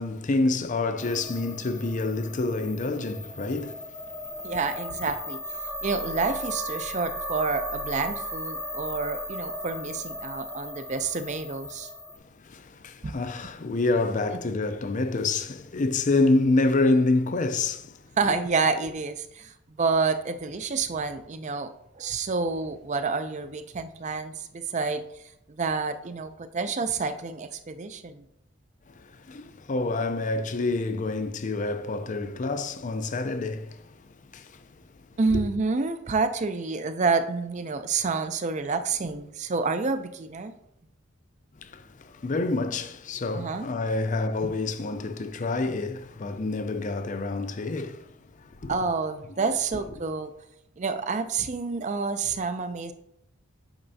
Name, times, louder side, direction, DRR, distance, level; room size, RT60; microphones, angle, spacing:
voice 1, 0.0-4.5 12.4-18.0 28.9-34.7 35.3-35.4 41.6-48.7 49.4-49.5, left 3 dB, 40° left, 0.5 m, -28 dB
sound 1, 1.0-12.2, equal, 5° left, 0.6 m, -36 dB
voice 2, 4.4-5.4 5.8-11.9 13.0-13.2 14.3-14.4 18.2-21.7 22.0-25.0 25.5-28.2 35.2-40.5 43.3-43.7 44.4-44.5 48.7-50.3 50.8-52.9, right 4 dB, 35° right, 0.5 m, -28 dB
8.8 x 5.7 x 2.7 m
head